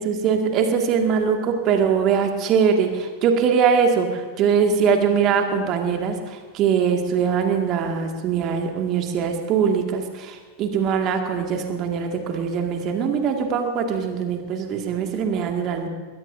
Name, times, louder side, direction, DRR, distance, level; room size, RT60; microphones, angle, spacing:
voice 1, 0.0-15.9, right 6 dB, 35° right, 3 dB, 2.1 m, -22 dB
22.0 x 19.5 x 2.7 m, 1.4 s
figure-of-eight pair, 90°, 0 cm